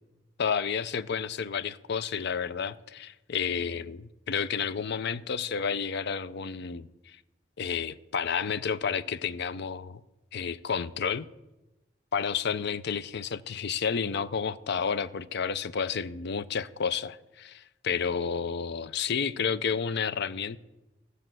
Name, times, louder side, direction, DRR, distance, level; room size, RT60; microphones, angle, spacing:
voice 1, 0.4-7.2 7.6-10.0 10.3-11.3 12.1-20.6, left 6 dB, 60° left, 0.5 m, -31 dB
14.5 x 6.5 x 7.6 m
head